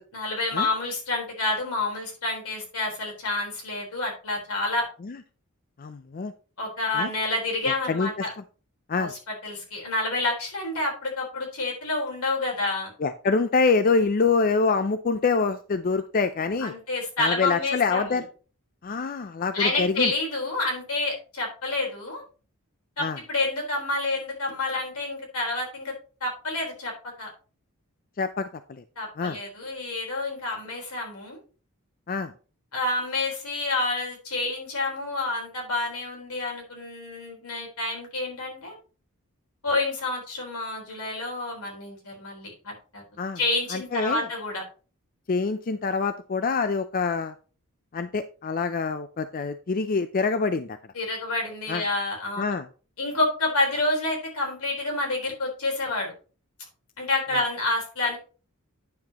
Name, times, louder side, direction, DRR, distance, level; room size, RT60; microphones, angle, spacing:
voice 1, 0.1-4.9 6.6-8.3 8.9-12.9 16.6-18.2 19.5-22.2 23.0-25.9 26.2-26.9 27.2-27.3 29.0-31.4 32.7-38.7 39.6-43.0 43.4-44.6 50.9-52.4 53.0-56.1 57.0-58.2, left 2 dB, 80° left, 0 dB, 4.0 m, -28 dB
voice 2, 5.8-6.3 6.9-7.1 7.6-8.1 8.9-9.1 13.0-16.7 17.2-18.2 18.8-20.1 23.0-23.2 28.2-28.8 29.2-29.4 32.1-32.3 43.2-43.4 43.7-44.3 45.3-47.3 47.9-50.8 51.7-51.8 52.4-52.7 57.3-57.4, left 4 dB, 40° left, 10 dB, 0.4 m, -25 dB
9.4 x 7.2 x 2.9 m, 0.36 s
head